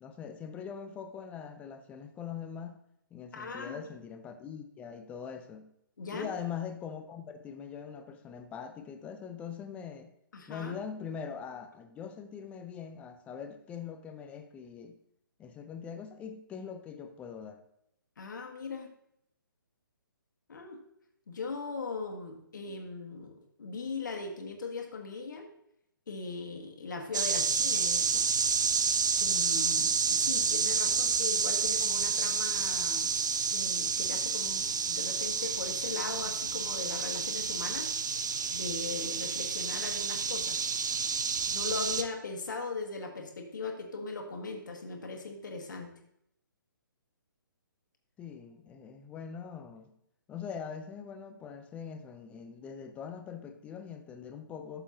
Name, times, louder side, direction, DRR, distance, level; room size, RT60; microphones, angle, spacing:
voice 1, 0.0-2.8 3.1-5.7 6.1-10.1 10.5-14.9 15.4-17.6 48.2-49.9 50.3-54.8, left 7 dB, 10° left, 7 dB, 0.6 m, -42 dB
voice 2, 3.3-3.9 6.0-6.3 10.3-10.8 18.2-18.9 20.5-20.8 21.3-25.5 26.1-28.3 29.2-33.2 33.5-37.9 38.5-40.6 41.5-45.9, left 4 dB, 60° left, 3 dB, 1.6 m, -39 dB
sound 1, 27.1-42.0, right 5 dB, 55° right, 0.7 m, -29 dB
12.0 x 6.9 x 2.8 m, 0.75 s
figure-of-eight pair, 135°, 12 cm